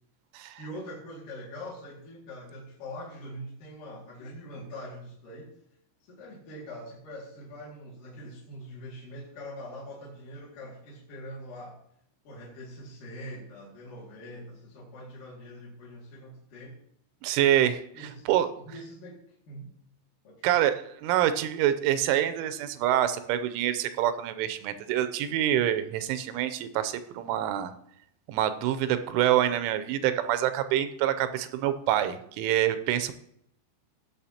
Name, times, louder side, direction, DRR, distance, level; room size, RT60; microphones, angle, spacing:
voice 1, 0.6-5.5 6.0-11.8 12.2-16.8 17.9-18.3 18.6-19.2 19.5-19.7 20.2-20.6, equal, 50° left, -6 dB, 3.3 m, -43 dB
voice 2, 17.2-17.8 18.3-18.5 20.4-20.7 21.0-27.7 28.3-33.1, right 11 dB, 85° right, 11 dB, 3.2 m, -26 dB
18.0 x 7.0 x 2.9 m, 0.72 s
omnidirectional pair, 5.5 m